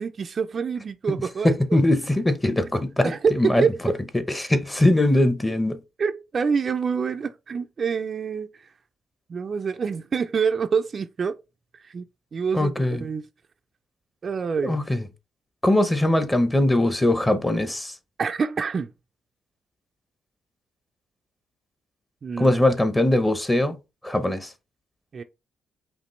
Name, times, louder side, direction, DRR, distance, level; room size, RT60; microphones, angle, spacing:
voice 1, 0.0-1.6 3.0-3.8 6.0-8.7 9.3-11.4 11.7-12.0 12.3-13.3 14.2-14.8 18.2-18.9 22.2-22.6 25.1-25.2, right 6 dB, 45° right, 0.4 m, -26 dB
voice 2, 1.4-3.6 4.3-5.8 12.5-13.1 14.6-15.0 15.6-17.9 22.4-23.8 24.0-24.5, left 1 dB, 10° left, 0.8 m, -21 dB
5.1 x 2.9 x 3.1 m
cardioid pair, 90°, 0 cm